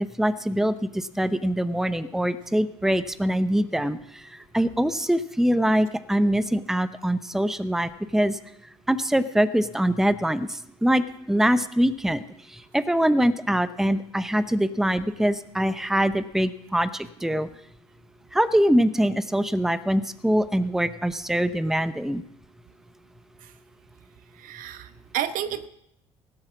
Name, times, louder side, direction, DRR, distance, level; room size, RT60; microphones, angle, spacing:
voice 1, 0.2-4.2 4.5-8.4 8.9-12.2 12.5-17.5 18.3-22.2, equal, ahead, 15 dB, 0.8 m, -23 dB
voice 2, 24.4-25.7, right 10 dB, 60° right, 13 dB, 1.0 m, -31 dB
17.5 x 7.6 x 6.1 m, 0.78 s
hypercardioid pair, 55°, 16 cm